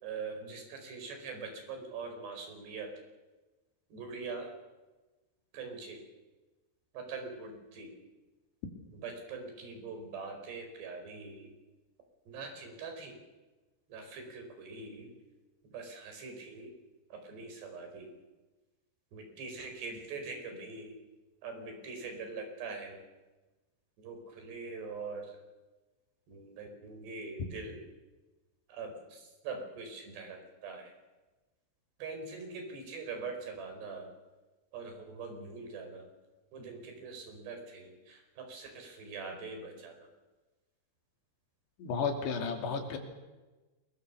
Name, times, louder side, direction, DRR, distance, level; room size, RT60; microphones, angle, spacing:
voice 1, 0.0-2.9 3.9-4.5 5.5-6.0 7.0-7.9 9.0-11.5 12.3-13.1 13.9-15.1 15.7-16.7 17.3-18.1 19.1-20.9 21.4-23.0 24.0-25.2 26.3-27.8 28.8-28.9 29.5-30.4 30.6-30.8 32.0-34.1 34.7-36.0 36.5-37.9 38.5-39.9, right 4 dB, 85° right, 5 dB, 7.0 m, -42 dB
voice 2, 41.8-43.0, left 5 dB, 85° left, 5 dB, 4.9 m, -33 dB
28.5 x 22.0 x 7.0 m, 1.2 s
omnidirectional pair, 4.7 m